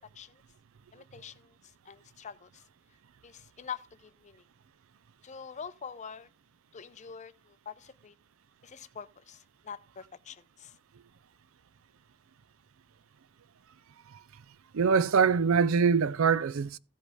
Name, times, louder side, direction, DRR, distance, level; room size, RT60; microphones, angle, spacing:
voice 1, 0.9-2.6 3.2-4.4 5.2-6.3 6.7-8.2 8.6-10.8, left 7 dB, 35° left, 0.5 m, -45 dB
voice 2, 14.7-16.8, right 6 dB, 65° right, 0.4 m, -24 dB
14.5 x 5.2 x 4.8 m
head